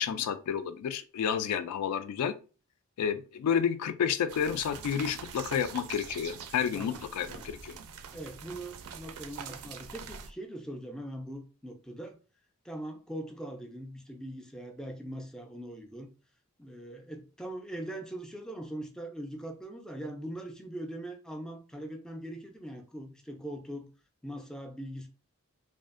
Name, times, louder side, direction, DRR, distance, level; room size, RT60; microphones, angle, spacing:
voice 1, 0.0-2.4 3.0-7.8, left 8 dB, 85° left, 0.3 m, -30 dB
sound 1, 4.3-10.3, right 6 dB, 75° right, 0.4 m, -44 dB
voice 2, 8.1-12.2 12.6-16.1 16.6-23.9 24.2-25.1, right 1 dB, 5° left, 0.3 m, -41 dB
2.6 x 2.4 x 2.4 m
head